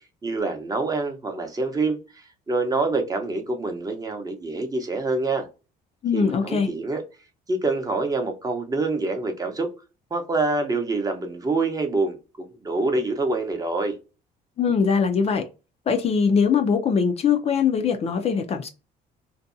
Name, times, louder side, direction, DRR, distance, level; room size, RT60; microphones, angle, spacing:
voice 1, 0.2-5.5 6.1-7.0 7.5-9.7 10.1-13.9, right 3 dB, 20° right, 0.7 m, -26 dB
voice 2, 6.0-6.7 14.6-15.4 15.9-18.7, left 6 dB, 40° left, 0.4 m, -21 dB
2.6 x 2.2 x 2.5 m
cardioid pair, 110°, 17 cm